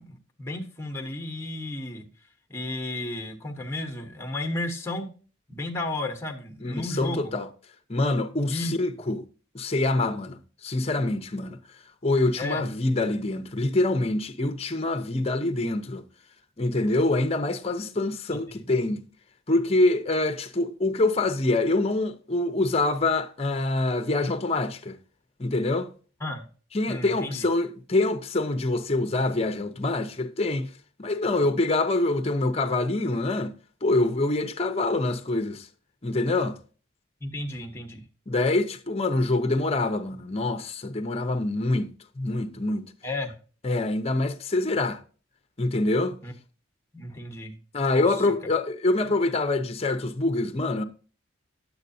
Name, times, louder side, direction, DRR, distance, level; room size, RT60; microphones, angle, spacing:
voice 1, 0.0-2.1 2.5-5.1 5.5-7.3 8.5-8.7 12.4-12.6 18.3-18.7 26.2-26.5 26.9-27.5 37.2-38.0 43.0-43.4 46.2-46.3 46.9-47.6 47.9-48.1, left 2 dB, 15° left, 1.1 m, -33 dB
voice 2, 6.6-7.5 7.9-9.2 9.5-11.6 12.0-16.0 16.6-19.1 19.5-25.0 25.4-25.9 26.7-30.7 31.0-33.5 33.8-35.7 36.0-36.6 38.3-42.9 43.6-45.0 45.6-46.2 47.7-50.8, left 2 dB, 30° left, 0.7 m, -25 dB
10.0 x 8.0 x 2.7 m
head